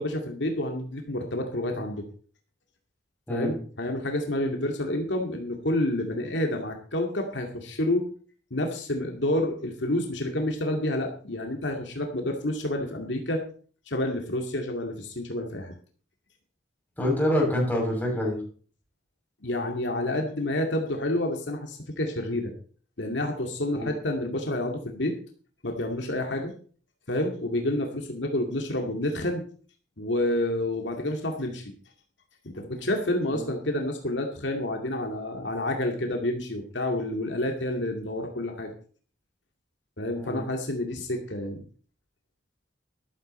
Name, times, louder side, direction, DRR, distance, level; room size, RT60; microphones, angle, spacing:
voice 1, 0.0-2.0 3.3-8.1 8.5-13.4 13.9-15.7 19.4-22.5 23.0-25.1 25.6-26.5 27.1-29.4 30.0-31.7 32.4-38.7 40.0-41.6, left 1 dB, 70° left, 3 dB, 2.2 m, -29 dB
voice 2, 17.0-18.4 23.7-23.9 33.3-33.4 40.1-40.4, left 1 dB, 10° left, -2 dB, 7.0 m, -26 dB
13.5 x 12.5 x 4.3 m, 0.42 s
head